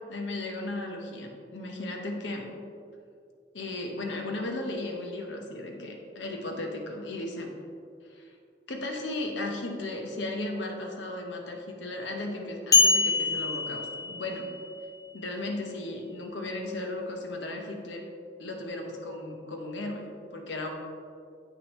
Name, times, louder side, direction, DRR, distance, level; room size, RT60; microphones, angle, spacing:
voice 1, 0.1-2.5 3.5-7.5 8.1-8.3 8.7-14.5 15.1-18.1 18.4-20.7, left 2 dB, 80° left, 2 dB, 1.0 m, -35 dB
sound 1, 12.7-14.6, left 4 dB, 20° left, 0.7 m, -24 dB
8.2 x 6.4 x 3.1 m, 2.4 s
head